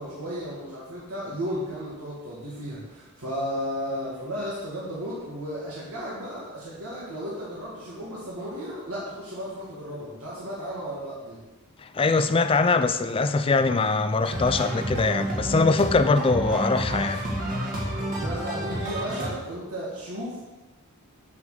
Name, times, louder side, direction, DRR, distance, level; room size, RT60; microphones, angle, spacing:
voice 1, 0.0-11.4 18.1-20.4, equal, 80° right, -6 dB, 2.2 m, -34 dB
voice 2, 11.8-17.2, left 3 dB, 25° left, 10 dB, 0.4 m, -22 dB
sound 1, 14.2-19.3, right 1 dB, 40° right, 2.1 m, -29 dB
8.3 x 6.5 x 5.0 m, 1.1 s
head